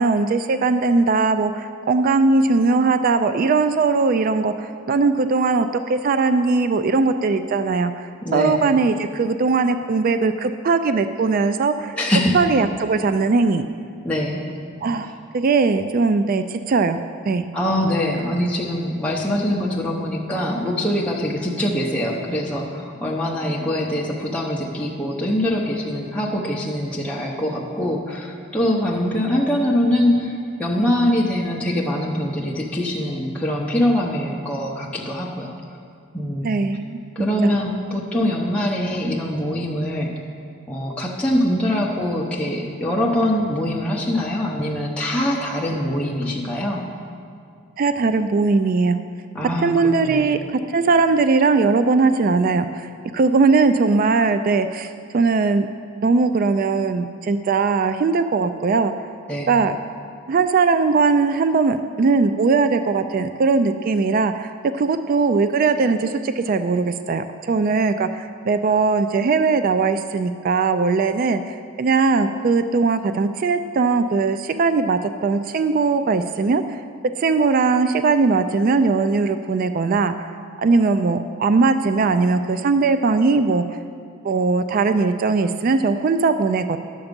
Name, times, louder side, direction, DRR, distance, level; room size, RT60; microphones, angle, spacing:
voice 1, 0.0-11.9 12.3-13.6 14.8-17.0 17.3-17.5 36.4-37.0 37.4-37.6 38.1-38.3 47.8-49.0 49.6-55.7 56.0-58.9 59.5-59.7 60.3-76.8 77.2-80.3 80.6-83.8 84.2-86.8, right 4 dB, 40° right, 10 dB, 0.3 m, -19 dB
voice 2, 8.2-8.5 11.9-12.4 14.0-14.4 17.5-35.5 36.1-36.5 37.2-40.1 40.7-46.9 49.3-49.7 50.0-50.3 59.3-59.5, left 1 dB, 5° left, -4 dB, 0.7 m, -23 dB
10.5 x 7.1 x 5.1 m, 2.3 s
head